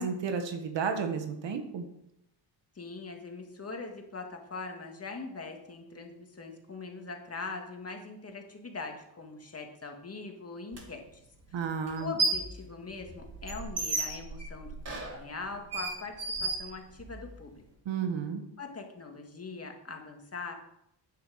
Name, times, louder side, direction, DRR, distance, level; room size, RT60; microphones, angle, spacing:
voice 1, 0.0-1.9 11.5-12.1 17.9-18.4, right 6 dB, 80° right, 6 dB, 1.7 m, -32 dB
voice 2, 2.8-11.2 11.5-11.7 12.0-17.6 18.6-20.5, left 4 dB, 35° left, 3 dB, 2.1 m, -42 dB
sound 1, 10.7-10.8 11.9-12.5 12.9-17.3, right 3 dB, 35° right, 4.0 m, -33 dB
9.5 x 7.4 x 6.4 m, 0.80 s
cardioid pair, 95°, 44 cm